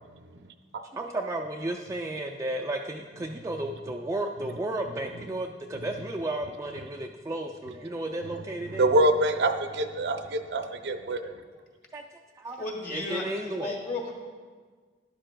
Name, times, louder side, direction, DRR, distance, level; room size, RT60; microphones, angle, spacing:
voice 1, 0.9-8.9 11.9-12.0 12.4-12.6 12.9-13.8, right 1 dB, 15° right, 1 dB, 0.3 m, -33 dB
voice 2, 8.7-11.3, right 1 dB, 70° right, 6 dB, 0.6 m, -25 dB
voice 3, 12.6-13.3 13.6-14.1, left 2 dB, 45° left, -1 dB, 1.9 m, -33 dB
12.5 x 11.0 x 2.2 m, 1.5 s
head